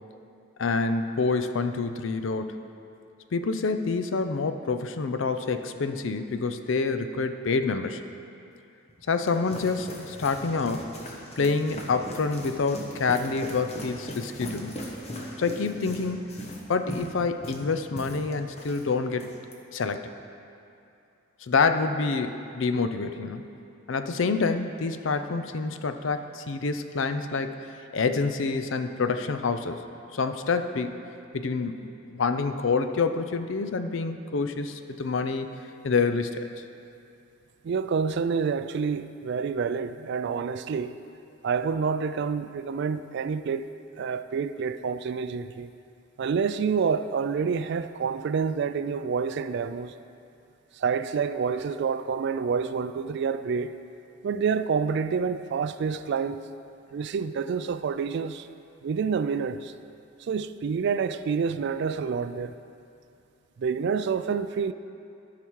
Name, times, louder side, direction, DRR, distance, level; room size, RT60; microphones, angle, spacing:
voice 1, 0.6-2.6 3.3-8.0 9.1-10.9 11.4-14.7 15.4-19.3 19.7-20.0 21.4-23.4 23.9-27.5 27.9-29.8 30.1-31.0 31.3-31.8 32.1-35.5 35.8-36.5, left 4 dB, 65° left, 8 dB, 0.5 m, -27 dB
sound 1, 8.9-18.8 19.1-19.5, equal, 35° left, 1.0 m, -39 dB
voice 2, 37.6-40.9 41.4-43.7 44.0-45.7 46.2-49.9 50.8-53.7 54.2-56.4 56.9-58.5 58.8-59.7 60.2-62.5 63.6-64.7, right 6 dB, 60° right, 12 dB, 0.3 m, -28 dB
13.5 x 5.8 x 4.6 m, 2.6 s
head